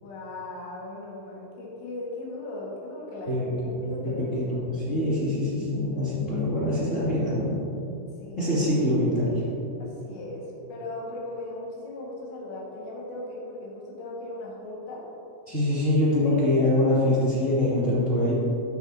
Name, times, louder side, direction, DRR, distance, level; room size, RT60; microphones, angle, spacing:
voice 1, 0.0-4.7 8.2-8.4 9.8-15.0 16.2-16.7, left 1 dB, 70° left, -4 dB, 3.9 m, -37 dB
voice 2, 4.9-7.6 8.4-9.4 15.5-18.3, left 1 dB, 25° left, -9 dB, 2.0 m, -24 dB
14.5 x 9.6 x 2.8 m, 2.9 s
omnidirectional pair, 5.4 m